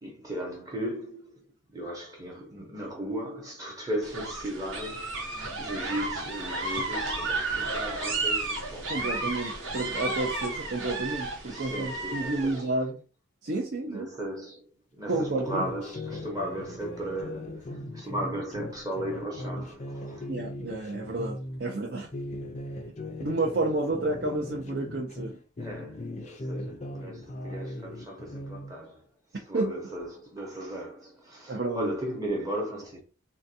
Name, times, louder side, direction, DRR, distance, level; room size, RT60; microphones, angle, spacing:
voice 1, 0.0-1.4 1.7-8.9 11.5-12.7 13.8-20.3 25.6-29.0 29.5-33.0, right 1 dB, 15° right, 0.8 m, -36 dB
sound 1, 4.0-12.6, right 3 dB, 80° right, 1.1 m, -32 dB
voice 2, 8.9-13.0 13.4-14.1 15.1-15.6 20.3-22.1 23.2-25.4 29.5-29.7 31.5-31.9, right 2 dB, 55° right, 0.6 m, -30 dB
sound 2, 15.1-21.6 22.0-25.3 25.6-28.7, left 1 dB, 35° left, 0.4 m, -39 dB
3.8 x 2.2 x 2.7 m
head